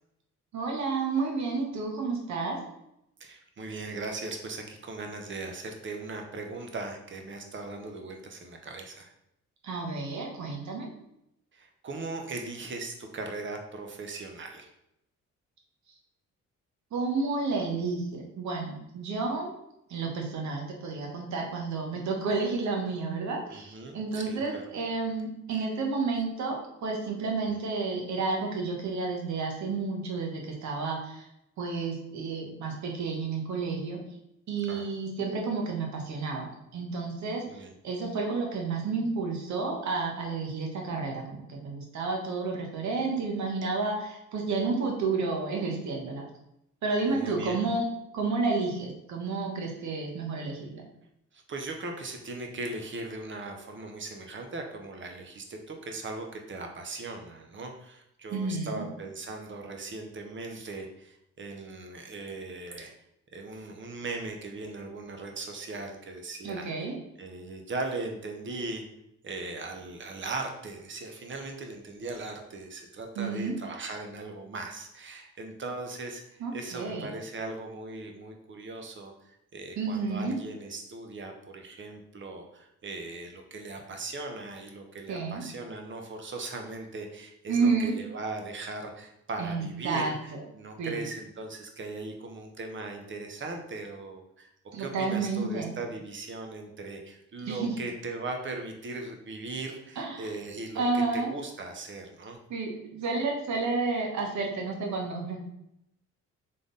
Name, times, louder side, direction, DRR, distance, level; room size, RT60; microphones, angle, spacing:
voice 1, 0.5-2.6 9.6-10.9 16.9-19.5 19.9-31.2 31.6-34.0 34.5-46.2 46.8-47.8 48.1-50.8 58.3-58.8 66.4-67.0 73.2-73.5 76.4-77.1 79.8-80.4 85.1-85.4 87.5-87.9 89.4-90.4 90.8-91.0 94.7-95.7 97.5-97.7 100.0-100.3 100.7-101.4 102.5-105.4, right 4 dB, 70° right, 1 dB, 1.2 m, -31 dB
voice 2, 3.2-9.1 11.5-14.7 23.5-24.6 27.5-27.6 34.7-34.9 37.5-37.7 47.1-47.6 51.3-62.9 63.3-66.9 67.2-68.8 69.2-79.1 79.5-94.5 94.8-102.4, right 3 dB, 40° right, 3 dB, 0.9 m, -39 dB
3.8 x 3.3 x 3.9 m, 0.81 s
cardioid pair, 90°, 30 cm